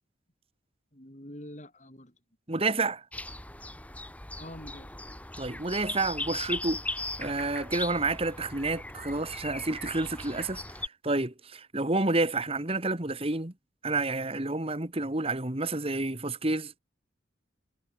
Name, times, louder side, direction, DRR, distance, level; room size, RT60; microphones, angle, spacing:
voice 1, 0.9-2.2 4.4-4.9, left 1 dB, 35° left, 5.8 m, -45 dB
voice 2, 2.5-3.0 5.4-6.8 7.2-10.6 11.0-13.5 13.8-16.7, right 2 dB, 30° right, 1.6 m, -29 dB
sound 1, 3.1-10.9, left 2 dB, 5° left, 2.0 m, -38 dB
head